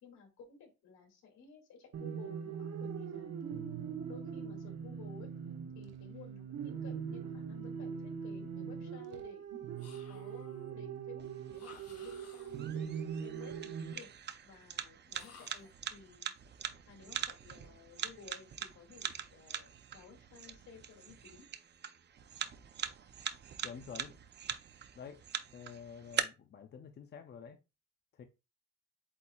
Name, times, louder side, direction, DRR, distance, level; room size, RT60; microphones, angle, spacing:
voice 1, 0.0-3.8 4.1-5.3 5.7-9.4 10.1-14.1 14.4-16.3 16.9-21.5, left 5 dB, 75° left, 2.2 m, -55 dB
sound 1, 1.9-13.9, right 7 dB, 60° right, 0.9 m, -41 dB
sound 2, 9.8-10.6 11.5-12.8 15.1-15.8, left 6 dB, 55° left, 1.0 m, -57 dB
sound 3, 11.2-26.2, right 8 dB, 35° right, 0.5 m, -43 dB
voice 2, 23.6-24.2 25.0-25.2 25.5-27.6 28.1-28.2, left 6 dB, 35° left, 0.5 m, -48 dB
8.2 x 2.8 x 2.3 m
cardioid pair, 120°, 29 cm